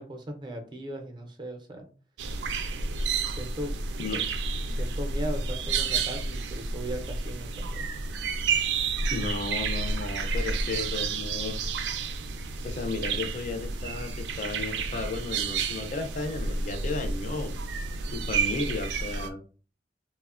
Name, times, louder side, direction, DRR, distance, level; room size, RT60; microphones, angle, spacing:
voice 1, 0.0-1.9 3.3-3.7 4.6-7.8, right 1 dB, 25° right, 4 dB, 0.4 m, -38 dB
sound 1, 2.2-19.3, right 4 dB, 90° right, 0.4 m, -30 dB
voice 2, 9.1-11.6 12.6-17.5 18.1-19.4, left 3 dB, 40° left, 5 dB, 0.4 m, -34 dB
2.9 x 2.0 x 2.4 m, 0.38 s
head